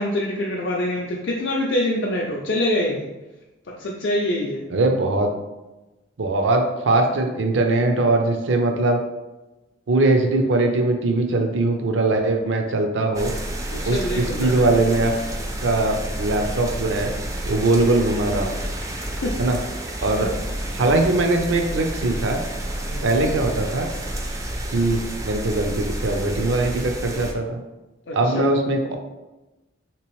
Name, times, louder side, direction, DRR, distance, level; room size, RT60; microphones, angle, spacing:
voice 1, 0.0-3.1 3.7-4.6 13.7-14.7 19.2-19.3 20.2-20.3 22.8-23.1 28.1-28.5, left 1 dB, 60° left, -2 dB, 0.4 m, -25 dB
voice 2, 4.7-5.3 6.2-9.0 9.9-13.3 13.9-15.1 15.6-17.1 17.5-18.5 19.4-19.6 20.0-20.3 20.7-22.4 23.0-23.9 24.7-27.6 28.1-28.9, right 2 dB, 75° right, 4 dB, 0.5 m, -21 dB
sound 1, 13.1-27.3, right 1 dB, 15° right, 0.3 m, -30 dB
3.2 x 3.0 x 3.0 m, 1.1 s
head